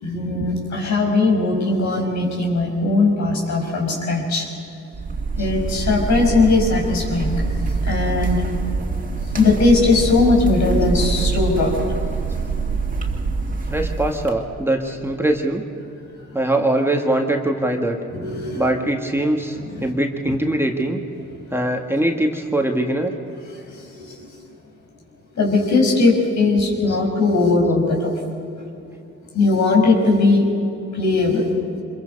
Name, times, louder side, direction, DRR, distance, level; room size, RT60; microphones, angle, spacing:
voice 1, 0.0-4.5 5.4-7.4 7.8-8.4 9.3-11.7 18.1-18.7 19.5-19.8 20.3-20.4 23.5-23.6 23.9-24.0 25.4-28.1 29.3-30.4 30.9-31.5, left 3 dB, 65° left, 1 dB, 5.5 m, -19 dB
sound 1, 4.9-14.3, right 4 dB, 25° right, 2.5 m, -24 dB
voice 2, 13.7-15.7 16.3-18.0 18.6-21.0 21.5-23.1 26.9-27.0, right 1 dB, 10° right, 2 dB, 1.7 m, -22 dB
25.5 x 22.0 x 5.4 m, 2.8 s
cardioid pair, 90°, 30 cm